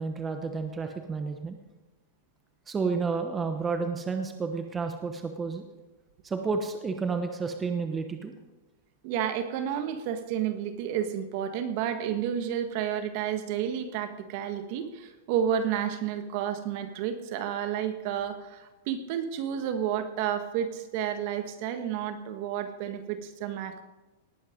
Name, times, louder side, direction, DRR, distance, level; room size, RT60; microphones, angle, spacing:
voice 1, 0.0-1.6 2.7-5.6 6.2-8.3, right 4 dB, 15° right, 5 dB, 1.0 m, -31 dB
voice 2, 9.0-23.8, right 9 dB, 50° right, 8 dB, 1.6 m, -31 dB
18.5 x 9.0 x 5.2 m, 1.1 s
supercardioid pair, 145°, 0 cm